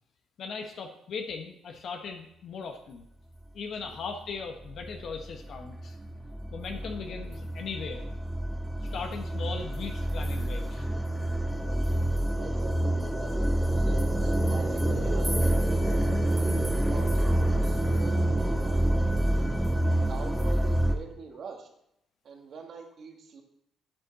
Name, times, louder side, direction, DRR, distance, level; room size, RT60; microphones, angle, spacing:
voice 1, 0.4-3.0 3.5-5.9 6.5-8.0 8.8-10.9, left 5 dB, 65° left, 4 dB, 1.2 m, -38 dB
sound 1, 4.0-4.1 4.6-20.9, right 1 dB, ahead, 1.3 m, -27 dB
voice 2, 6.4-6.9 11.8-12.1 12.4-16.4 16.9-19.4 20.0-21.7 22.2-23.4, right 5 dB, 60° right, 2 dB, 1.9 m, -45 dB
sound 2, 13.7-19.8, right 3 dB, 35° right, 0.6 m, -37 dB
8.8 x 8.6 x 4.2 m, 0.78 s
cardioid pair, 90°, 0 cm